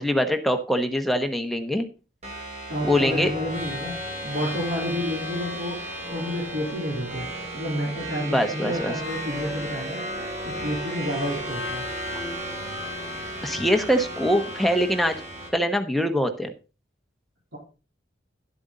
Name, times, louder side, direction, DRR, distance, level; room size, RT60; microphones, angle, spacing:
voice 1, 0.0-1.8 2.8-3.3 8.3-8.9 13.4-15.2 15.5-16.5, equal, ahead, 5 dB, 1.1 m, -23 dB
sound 1, 2.2-15.5, equal, 35° right, 3.4 m, -34 dB
voice 2, 2.7-10.0 10.4-11.8 17.5-17.6, equal, 70° right, -3 dB, 3.7 m, -30 dB
12.0 x 8.0 x 3.9 m, 0.33 s
head